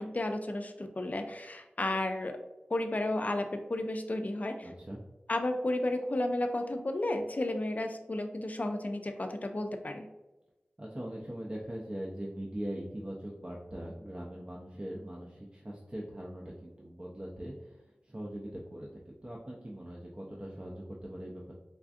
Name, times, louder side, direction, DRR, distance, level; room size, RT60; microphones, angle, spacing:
voice 1, 0.0-2.4 2.7-4.7 5.3-10.1, left 1 dB, 40° left, 6 dB, 0.4 m, -33 dB
voice 2, 4.6-5.0 10.8-21.5, right 1 dB, 30° right, -4 dB, 0.5 m, -41 dB
3.4 x 2.5 x 2.4 m, 1.0 s
cardioid pair, 40°, 4 cm